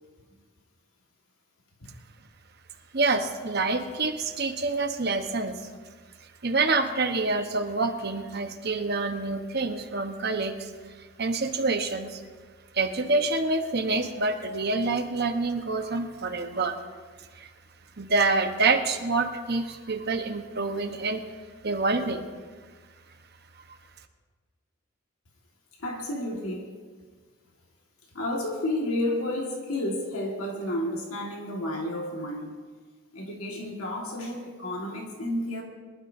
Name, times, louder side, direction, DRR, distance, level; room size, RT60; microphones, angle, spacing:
voice 1, 2.9-5.6 6.4-12.2 12.7-16.8 17.3-17.5 18.0-21.2 21.6-22.3, right 3 dB, 45° right, 5 dB, 1.1 m, -27 dB
voice 2, 25.8-26.7 28.1-32.6 33.1-35.6, left 1 dB, 75° left, 0 dB, 1.8 m, -31 dB
23.5 x 12.0 x 2.7 m, 1.5 s
head